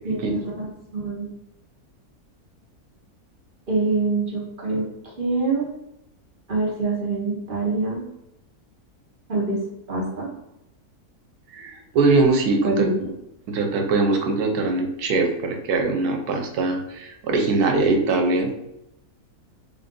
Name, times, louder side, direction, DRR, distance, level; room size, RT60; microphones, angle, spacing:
voice 1, 0.0-1.3 3.7-4.9 5.2-5.7 6.5-8.1 9.3-9.6 9.9-10.3 12.6-13.1, right 3 dB, 40° right, -5 dB, 0.9 m, -25 dB
voice 2, 11.5-12.9 13.5-18.5, right 3 dB, 80° right, 3 dB, 1.2 m, -22 dB
3.4 x 2.5 x 3.7 m, 0.85 s
omnidirectional pair, 1.6 m